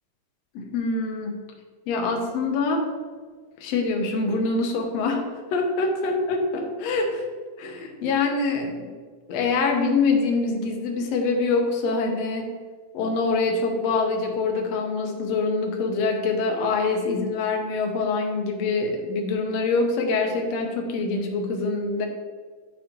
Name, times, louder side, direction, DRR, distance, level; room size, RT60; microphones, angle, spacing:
voice 1, 0.5-1.4 1.9-2.9 3.6-5.2 5.5-7.2 7.6-8.9 9.3-12.5 12.9-22.1, left 3 dB, 70° left, 2 dB, 1.7 m, -25 dB
9.6 x 5.2 x 2.9 m, 1.5 s
omnidirectional pair, 3.8 m